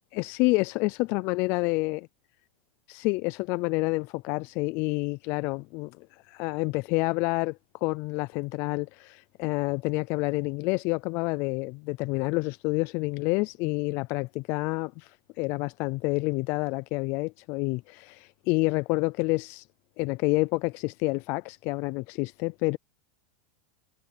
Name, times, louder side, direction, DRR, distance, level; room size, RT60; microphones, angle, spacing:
voice 1, 0.1-2.1 2.9-19.7 20.0-22.8, left 25 dB, 40° left, 0.4 m, -28 dB
supercardioid pair, 150°, 6 cm